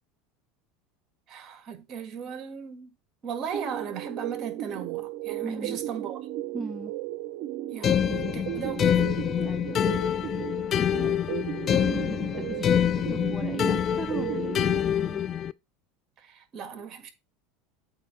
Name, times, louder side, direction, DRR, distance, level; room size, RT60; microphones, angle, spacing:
voice 1, 1.3-2.9 3.2-6.2 7.7-9.1 16.2-17.1, right 7 dB, 40° right, 1.7 m, -37 dB
sound 1, 3.5-14.8, right 14 dB, 60° right, 0.7 m, -36 dB
voice 2, 5.4-5.8 6.5-7.0 9.4-9.9 11.0-15.3, right 3 dB, 10° right, 0.7 m, -38 dB
sound 2, 7.8-15.5, left 9 dB, 35° left, 0.3 m, -26 dB
8.0 x 2.8 x 5.7 m
supercardioid pair, 115°, 0 cm